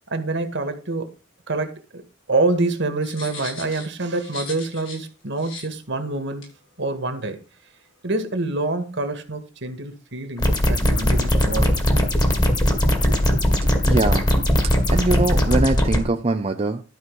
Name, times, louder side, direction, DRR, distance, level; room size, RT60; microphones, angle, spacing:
voice 1, 0.1-1.1 1.5-2.0 2.3-6.5 6.8-7.4 8.0-11.9, right 2 dB, 65° right, 1.9 m, -26 dB
sound 1, 3.0-5.1 5.4-5.7 6.4-6.5, left 3 dB, 75° left, 6.1 m, -38 dB
sound 2, 10.4-16.0, equal, 20° left, 2.1 m, -19 dB
voice 2, 13.8-14.3 14.6-16.8, right 2 dB, 30° right, 0.6 m, -23 dB
12.5 x 4.5 x 6.3 m
head